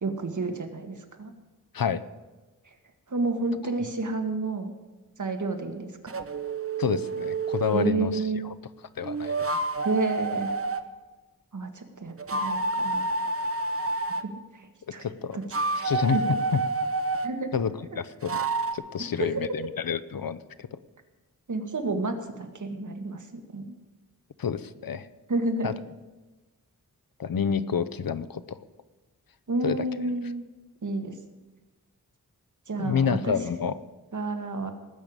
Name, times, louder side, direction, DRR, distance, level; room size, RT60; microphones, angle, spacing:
voice 1, 0.0-1.3 2.7-2.8 3.1-4.7 5.2-6.1 7.7-8.4 9.8-10.5 11.5-13.2 14.0-15.1 15.3-15.4 15.8-16.3 17.2-17.5 19.2-19.5 21.5-23.7 25.3-25.7 29.5-30.4 30.8-31.2 32.7-33.4 34.1-34.7, right 3 dB, 55° right, 5 dB, 1.8 m, -30 dB
sound 1, 6.1-8.0 9.0-10.8 12.2-14.2 15.3-17.3 18.2-18.7, right 3 dB, 40° right, 0.9 m, -29 dB
voice 2, 6.8-8.5 9.0-9.6 14.9-15.4 15.8-16.2 16.5-16.6 17.5-17.7 18.0-18.4 18.7-20.8 24.4-25.1 25.6-25.7 27.2-28.6 29.6-29.8 32.8-33.8, left 7 dB, 70° left, 14 dB, 0.8 m, -29 dB
19.0 x 6.8 x 8.8 m, 1.2 s
wide cardioid pair, 100°, 36 cm